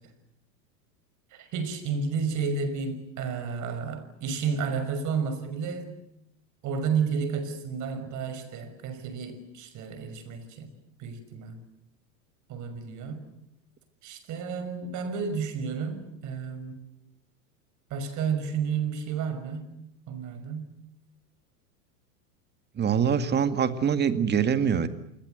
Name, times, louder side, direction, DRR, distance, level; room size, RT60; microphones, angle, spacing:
voice 1, 1.3-5.9 6.6-10.7 11.0-11.6 12.5-13.2 14.0-16.8 17.9-19.7 20.1-20.7, right 5 dB, 40° right, 6.1 m, -31 dB
voice 2, 22.8-24.9, right 7 dB, 20° right, 2.0 m, -24 dB
28.0 x 21.5 x 8.0 m
hypercardioid pair, 120°, 47 cm